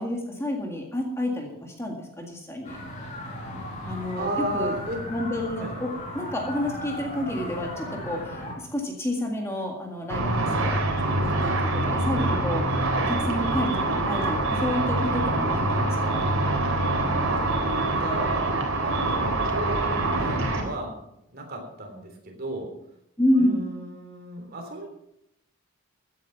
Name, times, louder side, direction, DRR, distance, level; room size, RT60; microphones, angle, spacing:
voice 1, 0.0-2.8 3.8-4.7 5.1-10.8 11.2-16.2 23.2-23.6, left 1 dB, 10° left, 1 dB, 1.9 m, -29 dB
sound 1, 2.6-8.5, left 1 dB, 35° left, 3.7 m, -36 dB
voice 2, 4.1-5.0 5.6-5.8 17.6-21.0 21.3-22.7 23.3-24.9, right 1 dB, 45° right, 3 dB, 3.4 m, -34 dB
Car / Traffic noise roadway noise / Engine, 10.1-20.6, right 2 dB, 65° right, 3.7 m, -25 dB
15.5 x 9.8 x 5.8 m, 0.80 s
head